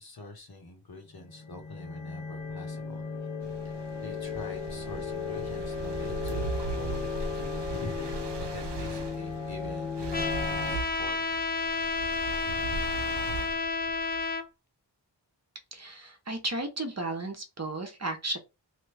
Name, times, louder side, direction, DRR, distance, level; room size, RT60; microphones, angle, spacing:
voice 1, 0.0-3.0 3.6-3.7 4.0-11.4, left 3 dB, 55° left, 3 dB, 1.1 m, -45 dB
sound 1, 1.2-10.7, left 5 dB, 90° left, 1.0 m, -36 dB
sound 2, 3.4-14.3, right 4 dB, 70° right, 0.7 m, -39 dB
Trumpet, 10.1-14.4, left 4 dB, 25° left, 0.4 m, -31 dB
voice 2, 15.7-18.4, right 2 dB, 35° right, 6 dB, 0.8 m, -34 dB
2.9 x 2.2 x 3.3 m, 0.26 s
wide cardioid pair, 60°, 44 cm